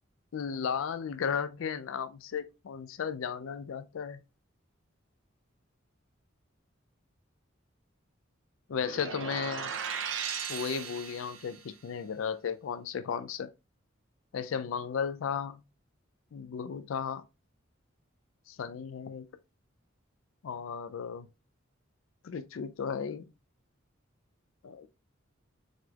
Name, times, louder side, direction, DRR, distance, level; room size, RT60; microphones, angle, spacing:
voice 1, 0.3-4.2 8.7-9.7 10.5-13.5 14.3-15.6 16.3-17.3 18.5-19.3 20.4-21.3 22.2-23.3 24.6-24.9, left 6 dB, 85° left, 0.4 m, -35 dB
sound 1, 8.8-11.6, right 7 dB, 70° right, 0.6 m, -37 dB
6.4 x 3.4 x 2.3 m
head